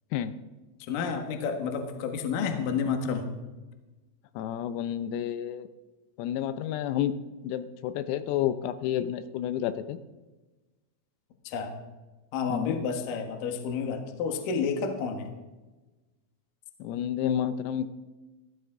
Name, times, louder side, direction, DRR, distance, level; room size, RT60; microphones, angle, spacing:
voice 1, 0.9-3.3 11.5-11.7 12.3-15.3, left 5 dB, 70° left, 5 dB, 2.1 m, -30 dB
voice 2, 4.4-5.7 6.2-7.2 7.4-10.0 12.5-12.8 16.8-17.9, left 10 dB, 85° left, 12 dB, 3.5 m, -30 dB
15.5 x 15.0 x 3.8 m, 1.2 s
omnidirectional pair, 6.0 m